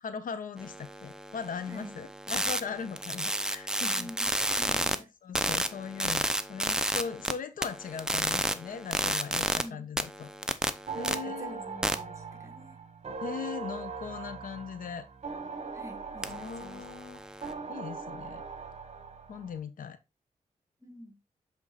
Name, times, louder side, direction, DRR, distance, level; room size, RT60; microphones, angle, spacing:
voice 1, 0.0-4.1 5.0-10.3 11.0-11.6 13.2-15.1 16.3-18.4 19.3-20.0, left 6 dB, 80° left, 0.8 m, -39 dB
sound 1, 0.6-5.0 5.4-7.3 7.6-9.6 10.0-11.1 11.8-12.0 16.2-17.5, right 1 dB, 5° right, 0.7 m, -32 dB
voice 2, 3.9-5.1 9.5-9.9 11.0-12.8 15.7-16.8 20.8-21.2, equal, 20° right, 2.0 m, -47 dB
sound 2, 10.9-19.6, right 5 dB, 50° right, 1.3 m, -40 dB
7.5 x 3.7 x 4.0 m
cardioid pair, 80°, 14 cm